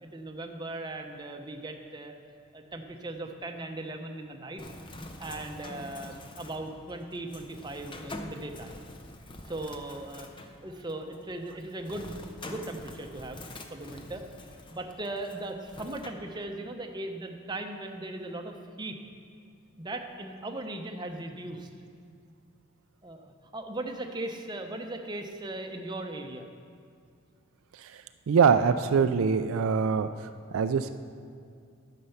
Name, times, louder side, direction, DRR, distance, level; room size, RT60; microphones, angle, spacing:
voice 1, 0.0-2.1 2.5-4.6 5.2-8.8 9.5-13.4 13.7-14.2 14.7-19.0 19.8-21.7 23.0-26.5, right 2 dB, 20° right, 4 dB, 0.7 m, -38 dB
Bird, 4.6-16.1, left 1 dB, 20° left, 0.6 m, -45 dB
voice 2, 28.3-30.1 30.5-30.9, right 6 dB, 70° right, 10 dB, 0.3 m, -23 dB
11.0 x 6.7 x 5.7 m, 2.3 s
head